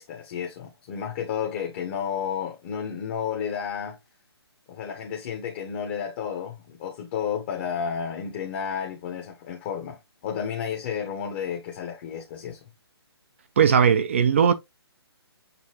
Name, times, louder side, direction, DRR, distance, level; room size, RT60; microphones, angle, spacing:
voice 1, 0.0-4.0 4.7-12.6, left 7 dB, 25° left, 0.7 m, -32 dB
voice 2, 13.6-14.5, right 7 dB, 30° right, 0.3 m, -18 dB
6.6 x 2.6 x 2.8 m
hypercardioid pair, 165°, 14 cm